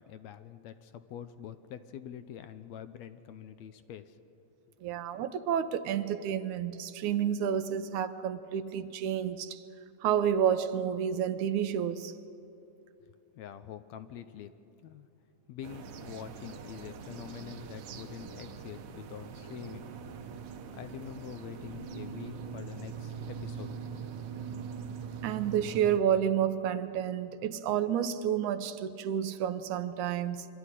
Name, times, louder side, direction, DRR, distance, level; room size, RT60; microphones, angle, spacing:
voice 1, 0.0-4.2 13.0-14.6 14.8-15.1 15.5-19.9 20.7-23.7, left 9 dB, 75° left, 11 dB, 1.9 m, -45 dB
voice 2, 4.8-9.6 10.0-12.1 25.2-30.5, right 9 dB, 85° right, 11 dB, 2.3 m, -30 dB
sound 1, 15.6-26.0, right 6 dB, 60° right, 1.7 m, -42 dB
25.0 x 13.0 x 9.9 m, 2.7 s
omnidirectional pair, 3.4 m